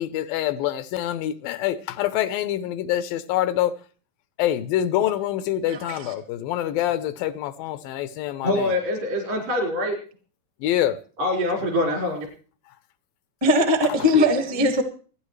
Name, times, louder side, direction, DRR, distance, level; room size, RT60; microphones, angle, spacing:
voice 1, 0.0-3.7 4.4-8.7 10.6-11.0, left 12 dB, 85° left, 2.5 m, -25 dB
voice 2, 5.7-6.1 13.4-14.8, left 1 dB, 15° right, 0.8 m, -20 dB
voice 3, 8.4-10.0 11.2-12.3, left 1 dB, 75° right, 6.5 m, -24 dB
27.0 x 10.0 x 3.2 m
omnidirectional pair, 4.0 m